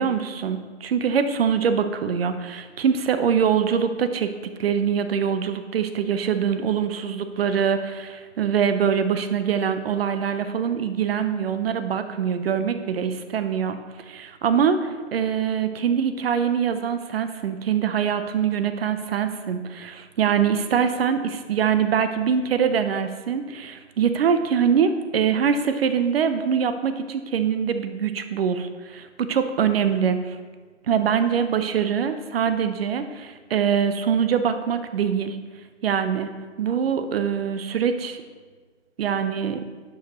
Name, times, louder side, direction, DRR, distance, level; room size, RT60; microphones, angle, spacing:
voice 1, 0.0-4.3 4.6-13.8 14.1-30.4 30.9-35.4 35.8-36.3 36.6-38.2 39.0-39.6, right 7 dB, 55° right, 9 dB, 0.7 m, -23 dB
10.5 x 5.4 x 3.0 m, 1.5 s
hypercardioid pair, 135°, 35 cm